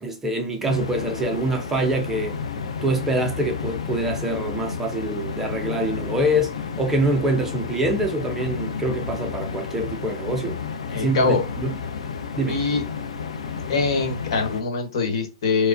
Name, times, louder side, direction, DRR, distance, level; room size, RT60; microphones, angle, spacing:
voice 1, 0.0-2.4 2.8-10.6 10.9-11.8 12.4-12.6, right 1 dB, 10° right, 0.4 m, -25 dB
sound 1, 0.6-14.6, left 5 dB, 85° left, 0.5 m, -31 dB
voice 2, 10.9-11.4 12.5-12.8 13.7-15.7, left 4 dB, 60° left, 1.1 m, -23 dB
4.5 x 2.1 x 2.6 m
hypercardioid pair, 150°, 3 cm